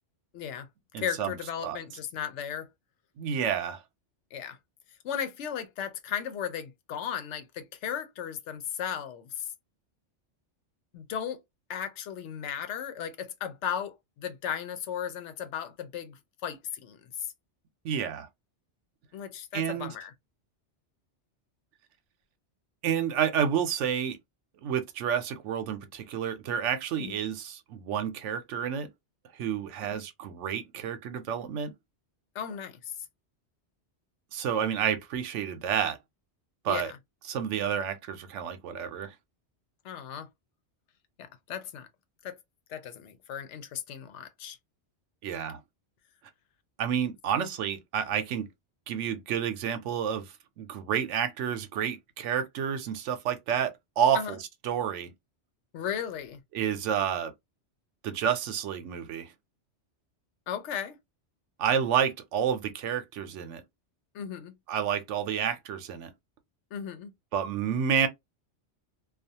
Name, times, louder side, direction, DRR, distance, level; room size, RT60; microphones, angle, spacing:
voice 1, 0.3-0.7 1.0-2.7 4.3-4.6 5.0-9.5 10.9-11.4 11.7-17.3 19.1-20.1 27.0-27.2 29.8-30.0 32.3-32.9 36.7-37.0 39.8-40.3 41.2-41.9 42.2-42.4 42.7-44.6 54.1-54.4 55.7-56.4 60.5-61.0 64.1-64.5 66.7-67.1, left 8 dB, 80° left, 0.9 m, -36 dB
voice 2, 0.9-1.3 1.6-1.8 3.2-3.8 17.8-18.3 19.5-19.9 22.8-24.2 24.6-28.9 29.4-31.7 34.3-36.0 36.6-36.9 37.3-39.1 45.2-45.6 46.8-48.5 48.9-50.2 50.6-54.4 54.6-55.1 56.5-57.3 58.0-59.3 61.6-63.6 64.7-66.1 67.3-68.1, right 8 dB, 90° right, 0.9 m, -29 dB
2.4 x 2.3 x 2.7 m
omnidirectional pair, 1.2 m